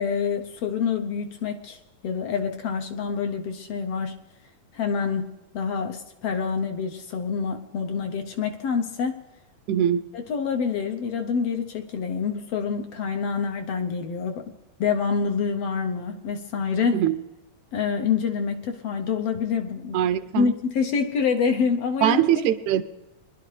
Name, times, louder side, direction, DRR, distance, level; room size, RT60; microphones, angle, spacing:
voice 1, 0.0-1.8 2.0-4.2 4.7-9.1 10.1-14.4 14.8-17.0 17.7-20.0 20.4-22.2, left 6 dB, 70° left, 1.6 m, -26 dB
voice 2, 9.7-10.0 16.9-17.1 19.9-20.5 22.0-22.8, right 10 dB, 85° right, 2.0 m, -21 dB
22.0 x 11.5 x 3.3 m
omnidirectional pair, 3.3 m